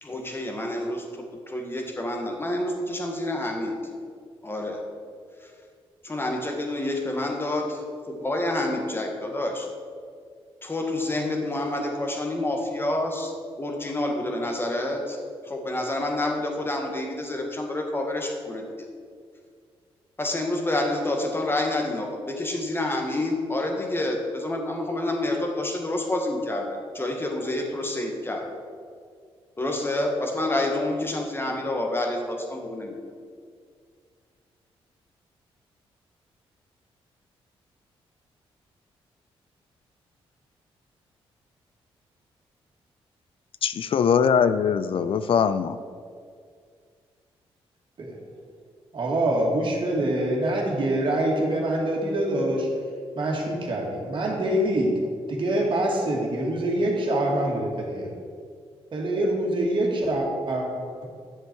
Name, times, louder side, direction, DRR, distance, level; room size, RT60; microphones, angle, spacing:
voice 1, 0.0-3.8 4.4-4.9 5.4-5.5 6.0-9.7 10.6-15.2 15.4-18.7 20.2-28.5 29.6-33.0, left 1 dB, 20° left, 2 dB, 1.8 m, -28 dB
voice 2, 43.6-45.8, left 7 dB, 60° left, 13 dB, 0.4 m, -22 dB
voice 3, 48.9-52.7 53.2-54.9 55.3-58.1 58.9-61.1, right 1 dB, 50° right, -1 dB, 2.3 m, -25 dB
10.5 x 6.9 x 4.6 m, 2.1 s
cardioid pair, 70°, 11 cm